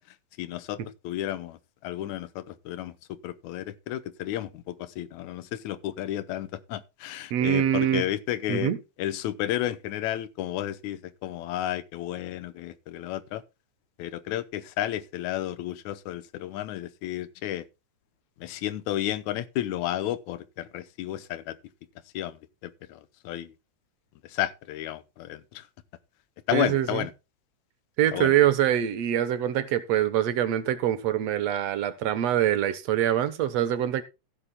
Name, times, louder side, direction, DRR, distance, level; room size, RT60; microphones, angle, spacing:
voice 1, 0.4-0.8 1.0-8.7 9.0-13.4 14.0-17.7 18.4-21.6 22.1-23.5 24.2-25.7 26.5-27.1 28.1-28.3, left 13 dB, 85° left, 2.1 m, -32 dB
voice 2, 7.3-8.0 8.5-8.8 26.5-27.1 28.0-34.0, right 11 dB, 65° right, 2.1 m, -24 dB
15.0 x 11.5 x 2.3 m
omnidirectional pair, 3.3 m